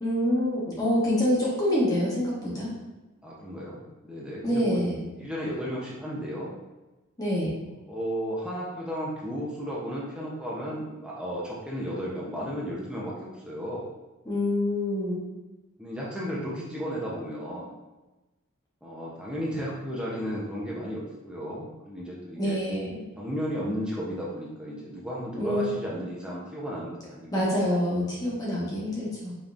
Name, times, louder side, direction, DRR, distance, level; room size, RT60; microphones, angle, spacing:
voice 1, 0.0-2.7 4.4-5.0 7.2-7.5 14.2-15.3 22.4-23.0 25.3-25.7 27.3-29.3, left 1 dB, 15° left, -7 dB, 1.3 m, -26 dB
voice 2, 3.2-4.8 5.2-6.5 7.9-13.8 15.8-17.8 18.8-22.6 23.2-27.9, equal, 5° right, -6 dB, 0.7 m, -34 dB
5.2 x 3.0 x 2.5 m, 1.1 s
head